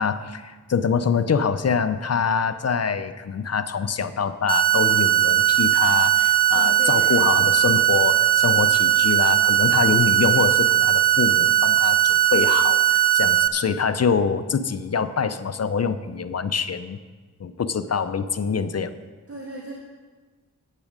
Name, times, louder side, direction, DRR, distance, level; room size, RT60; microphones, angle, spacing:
voice 1, 0.0-17.0 17.4-18.9, left 6 dB, 50° left, 11 dB, 0.5 m, -25 dB
sound 1, 4.5-13.5, right 13 dB, 30° right, 0.4 m, -19 dB
voice 2, 6.5-7.4 19.3-19.7, right 1 dB, 45° right, -3 dB, 1.9 m, -37 dB
10.5 x 8.3 x 5.1 m, 1.4 s
cardioid pair, 55°, 33 cm